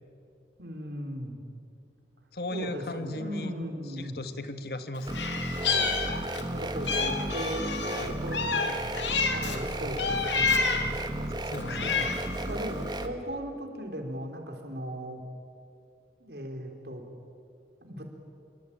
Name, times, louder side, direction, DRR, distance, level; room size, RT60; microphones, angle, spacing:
voice 1, 0.6-1.4 2.5-4.2 5.7-6.0 6.5-10.6 11.7-12.1 12.5-15.2 16.2-17.0 17.8-18.1, equal, 65° right, 3 dB, 4.0 m, -37 dB
voice 2, 2.3-3.5 4.0-5.3 7.9-8.2 11.5-12.0, left 1 dB, 60° left, 9 dB, 1.5 m, -37 dB
Meow, 5.1-6.5 6.9-9.6 10.0-11.0 11.5-12.4, left 4 dB, 85° left, 2.4 m, -29 dB
sound 1, 5.1-13.1, right 1 dB, 25° right, 1.5 m, -34 dB
26.0 x 23.0 x 8.8 m, 2.5 s
head